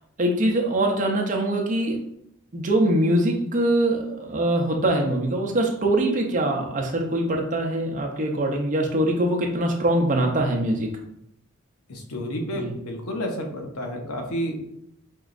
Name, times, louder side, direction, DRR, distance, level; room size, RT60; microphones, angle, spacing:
voice 1, 0.2-2.0 2.5-10.9 12.5-12.7, right 1 dB, 35° right, 1 dB, 0.6 m, -23 dB
voice 2, 11.9-14.6, equal, 85° left, 2 dB, 0.7 m, -30 dB
4.5 x 3.0 x 2.5 m, 0.76 s
head